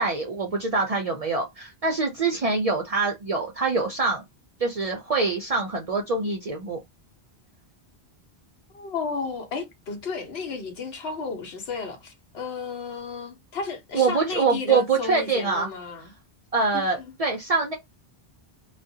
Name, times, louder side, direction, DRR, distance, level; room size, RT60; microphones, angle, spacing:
voice 1, 0.0-4.2 4.6-6.8 13.9-15.7 16.5-17.7, right 4 dB, 55° right, 0.4 m, -24 dB
voice 2, 8.7-16.1 16.7-17.1, left 4 dB, 80° left, 1.0 m, -33 dB
2.4 x 2.1 x 2.6 m
omnidirectional pair, 1.0 m